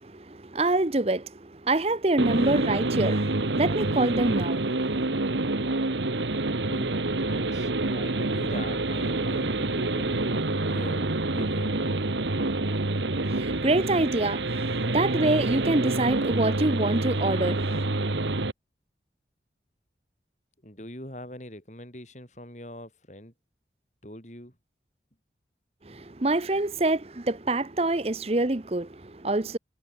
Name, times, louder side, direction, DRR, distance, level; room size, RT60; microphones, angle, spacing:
voice 1, 0.0-5.1 13.3-17.8 25.9-29.6, right 2 dB, 35° right, 0.9 m, -26 dB
sound 1, 2.2-18.5, right 2 dB, 85° right, 1.6 m, -27 dB
voice 2, 7.2-10.4 10.6-12.0 20.6-23.3 24.0-24.5, left 1 dB, 40° left, 6.3 m, -42 dB
head